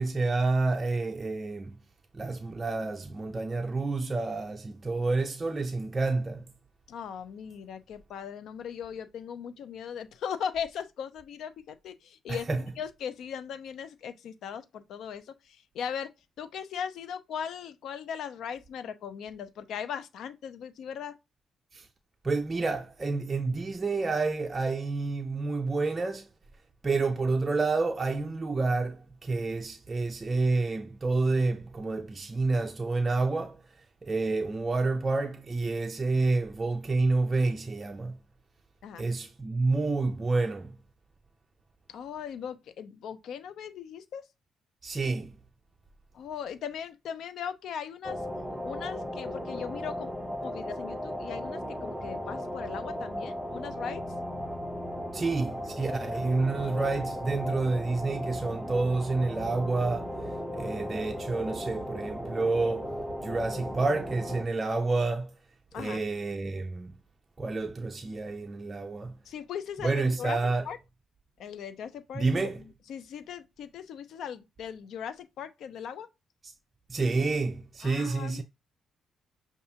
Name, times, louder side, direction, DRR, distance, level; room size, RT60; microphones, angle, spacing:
voice 1, 0.0-1.8 2.1-6.4 12.3-12.6 21.7-21.9 22.2-26.3 26.8-33.6 34.0-38.2 39.0-40.8 44.8-45.3 55.1-62.9 63.2-65.3 65.7-66.9 67.4-69.1 69.8-70.7 72.1-72.6 76.4-76.5 76.9-78.4, right 3 dB, 25° right, 0.4 m, -29 dB
voice 2, 6.9-16.1 16.4-21.2 38.8-39.0 41.9-44.2 46.1-48.2 48.6-50.1 50.4-54.0 65.7-66.0 69.3-70.4 70.6-70.8 71.4-76.1 77.8-78.4, left 8 dB, 70° left, 0.5 m, -38 dB
sound 1, 48.0-64.4, equal, 5° right, 0.8 m, -36 dB
6.5 x 2.4 x 2.8 m
cardioid pair, 90°, 0 cm